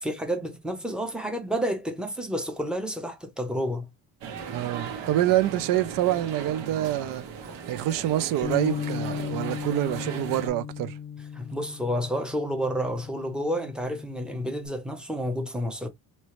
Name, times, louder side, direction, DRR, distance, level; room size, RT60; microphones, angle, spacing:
voice 1, 0.0-3.9 11.3-15.9, equal, ahead, 0.8 m, -30 dB
sound 1, 4.2-10.5, right 6 dB, 85° right, 1.4 m, -38 dB
voice 2, 4.5-7.2 7.7-11.0, right 13 dB, 65° right, 0.6 m, -26 dB
Bass guitar, 8.4-14.7, left 7 dB, 25° left, 0.4 m, -36 dB
3.1 x 2.9 x 3.0 m
cardioid pair, 145°, 35 cm